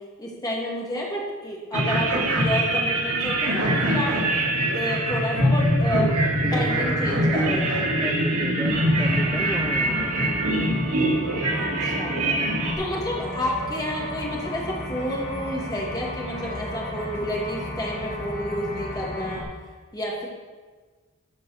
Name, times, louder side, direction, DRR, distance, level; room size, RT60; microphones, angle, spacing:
voice 1, 0.2-4.1 4.7-6.2 6.5-7.9 11.5-12.3 12.8-19.5 19.9-20.3, left 1 dB, 15° left, -3 dB, 2.2 m, -30 dB
sound 1, 1.7-12.7, right 1 dB, 90° right, 1.9 m, -23 dB
voice 2, 6.3-10.6, equal, ahead, 2 dB, 0.5 m, -34 dB
sound 2, 8.7-19.4, left 1 dB, 45° left, 2.1 m, -34 dB
13.5 x 5.3 x 6.6 m, 1.4 s
head